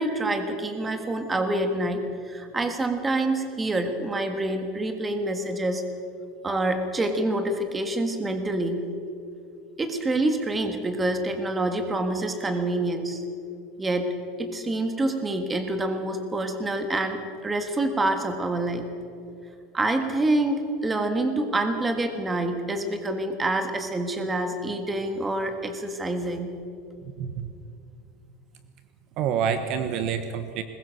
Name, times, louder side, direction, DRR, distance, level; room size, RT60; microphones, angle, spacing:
voice 1, 0.0-5.8 6.4-8.8 9.8-13.2 13.8-14.1 14.4-18.8 19.7-26.5, right 2 dB, 10° right, 6 dB, 1.7 m, -27 dB
voice 2, 27.2-27.5 29.2-30.6, right 7 dB, 45° right, 9 dB, 1.2 m, -27 dB
21.5 x 21.0 x 6.5 m, 2.5 s
supercardioid pair, 165°, 0 cm